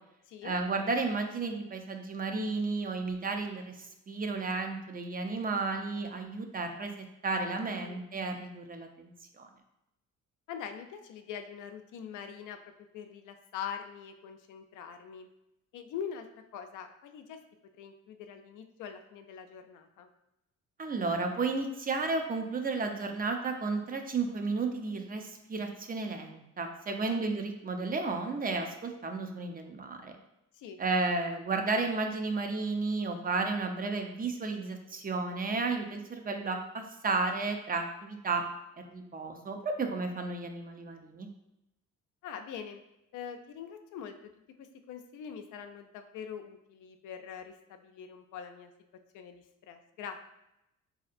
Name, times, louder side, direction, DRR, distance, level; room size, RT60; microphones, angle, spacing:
voice 1, 0.4-9.5 20.8-30.1 30.8-38.4 38.9-41.3, right 3 dB, 30° right, 4 dB, 0.5 m, -33 dB
voice 2, 7.7-8.0 10.5-12.6 12.9-15.3 15.7-17.4 17.8-20.1 27.1-27.2 30.5-30.8 31.3-31.4 42.2-42.8 43.1-44.1 44.6-48.7 49.1-50.2, left 7 dB, 80° left, 6 dB, 0.5 m, -43 dB
4.2 x 2.7 x 2.4 m, 0.87 s
cardioid pair, 90°, 30 cm